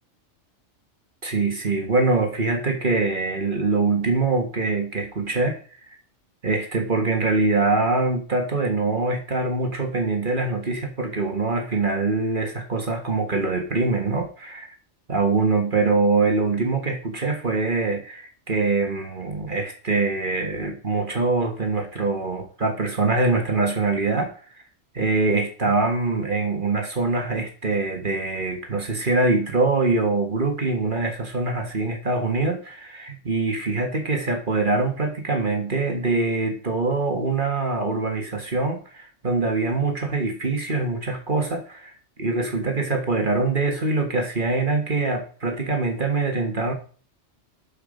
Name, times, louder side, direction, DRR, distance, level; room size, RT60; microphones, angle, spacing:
voice 1, 1.2-5.6 5.9-6.0 6.4-14.7 15.1-24.3 24.9-41.9 42.2-46.7, right 3 dB, 40° right, 4 dB, 1.7 m, -24 dB
12.5 x 5.4 x 5.3 m, 0.41 s
omnidirectional pair, 1.3 m